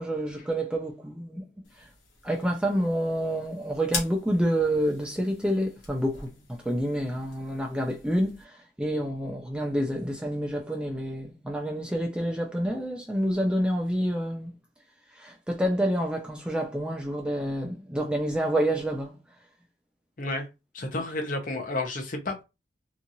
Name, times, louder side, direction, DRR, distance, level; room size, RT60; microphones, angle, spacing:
voice 1, 0.0-1.4 1.8-1.9 2.2-6.3 6.7-14.5 15.2-19.2 20.9-21.0, equal, 5° right, 0.3 m, -28 dB
sound 1, 1.6-8.4, left 3 dB, 85° left, 1.1 m, -42 dB
voice 2, 20.7-22.4, left 2 dB, 45° left, 0.6 m, -31 dB
2.9 x 2.4 x 2.6 m
head